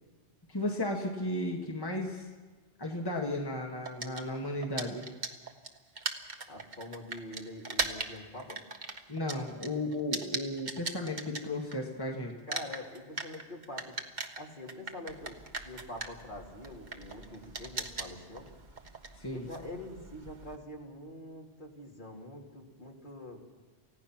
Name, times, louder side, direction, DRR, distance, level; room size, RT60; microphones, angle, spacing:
voice 1, 0.5-2.3 2.8-5.1 9.1-12.3 19.1-19.5, left 1 dB, 20° left, 0 dB, 1.8 m, -34 dB
sound 1, 3.8-12.0 12.3-20.6, right 3 dB, 40° right, 1.5 m, -39 dB
voice 2, 6.5-8.6 12.5-13.9 14.4-15.4 15.6-18.5 19.3-23.4, left 1 dB, 45° left, -1 dB, 3.2 m, -45 dB
29.0 x 16.5 x 6.0 m, 1.3 s
omnidirectional pair, 1.1 m